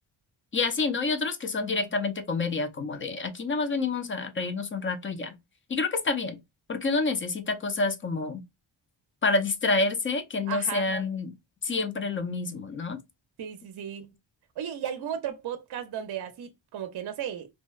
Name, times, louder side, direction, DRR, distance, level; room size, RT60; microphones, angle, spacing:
voice 1, 0.5-5.3 5.7-6.4 6.7-8.4 9.2-11.3 11.6-13.0, left 3 dB, 30° left, 0.4 m, -28 dB
voice 2, 10.5-10.9 13.4-14.1 14.6-17.5, right 9 dB, 55° right, 0.5 m, -35 dB
2.7 x 2.1 x 2.2 m
wide cardioid pair, 155°, 48 cm